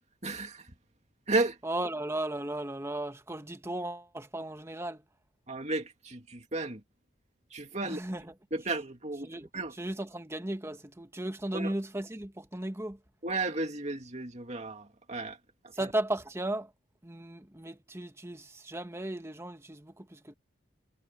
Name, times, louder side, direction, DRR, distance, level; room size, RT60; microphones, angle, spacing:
voice 1, 0.2-0.7 1.3-1.6 5.5-6.8 7.5-8.0 8.5-9.7 11.5-11.7 13.2-15.4, right 2 dB, 35° right, 2.4 m, -33 dB
voice 2, 1.6-5.0 7.8-8.4 9.2-13.0 15.7-16.7 17.0-20.3, right 1 dB, 15° right, 1.1 m, -36 dB
head